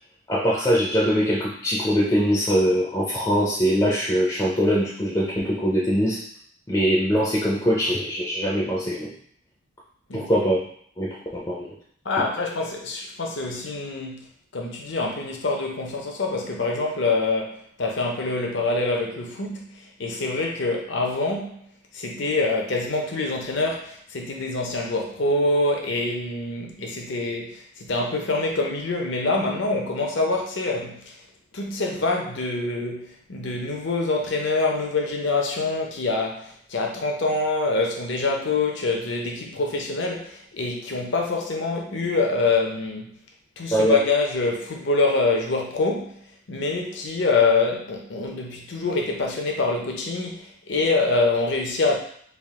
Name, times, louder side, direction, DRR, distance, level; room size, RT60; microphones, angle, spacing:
voice 1, 0.3-6.2 6.7-9.1 10.1-10.6 11.0-11.7 43.7-44.0, equal, 20° left, -6 dB, 0.5 m, -22 dB
voice 2, 12.0-14.3 14.5-21.6 21.9-31.2 31.5-43.1 43.6-46.2 46.5-52.0, left 3 dB, 55° left, 1 dB, 0.7 m, -25 dB
3.5 x 2.4 x 3.6 m, 0.63 s
head